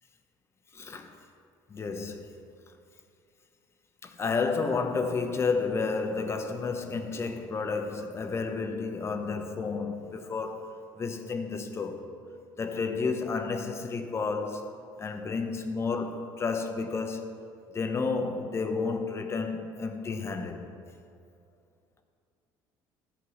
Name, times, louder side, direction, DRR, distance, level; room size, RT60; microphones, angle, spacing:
voice 1, 0.7-1.1 1.7-2.3 4.0-10.7 11.0-12.0 12.6-14.7 15.0-17.4 17.7-20.7, left 4 dB, 30° left, 0.9 m, -31 dB
11.0 x 4.5 x 7.8 m
cardioid pair, 105°, 9 cm